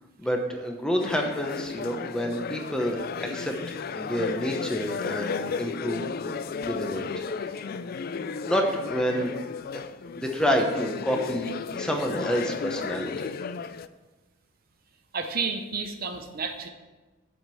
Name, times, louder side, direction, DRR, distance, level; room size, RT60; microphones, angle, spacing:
voice 1, 0.2-3.5 3.9-6.3 6.6-7.0 8.4-9.4 10.2-13.3, equal, 5° left, 2 dB, 1.0 m, -28 dB
sound 1, 1.0-13.9, left 5 dB, 45° left, 0.3 m, -34 dB
voice 2, 15.1-16.7, right 5 dB, 45° right, 5 dB, 0.7 m, -31 dB
7.9 x 5.2 x 7.6 m, 1.2 s
head